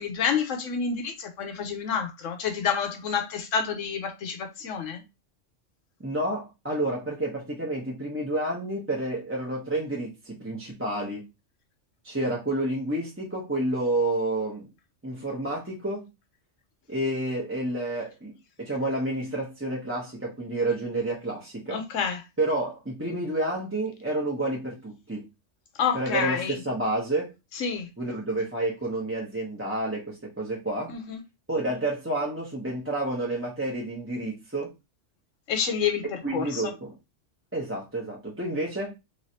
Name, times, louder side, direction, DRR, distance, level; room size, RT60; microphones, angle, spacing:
voice 1, 0.0-5.0 21.7-22.2 25.8-26.6 27.5-27.9 30.9-31.2 35.5-36.7, left 6 dB, 85° left, 1.1 m, -29 dB
voice 2, 6.0-11.2 12.0-14.7 15.0-16.1 16.9-21.8 22.4-25.2 25.9-27.3 28.0-30.9 31.5-34.7 36.2-36.9 37.5-38.9, right 1 dB, 10° right, 0.8 m, -29 dB
3.2 x 3.1 x 2.8 m
omnidirectional pair, 1.3 m